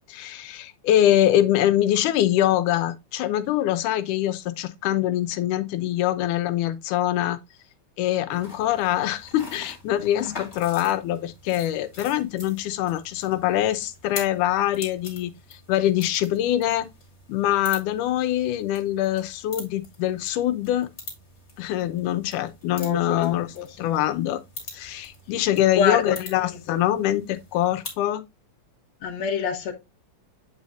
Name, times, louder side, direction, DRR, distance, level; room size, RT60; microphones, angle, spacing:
voice 1, 0.1-7.4 8.0-15.3 15.7-16.9 17.3-20.9 21.6-23.5 23.8-24.4 24.7-28.2, left 12 dB, 90° left, 2.3 m, -24 dB
sound 1, 8.3-28.0, left 3 dB, 30° left, 2.7 m, -44 dB
voice 2, 22.8-24.0 25.8-26.2 26.7-26.8 29.0-29.7, left 7 dB, 65° left, 2.2 m, -26 dB
9.0 x 4.9 x 2.6 m
omnidirectional pair, 3.6 m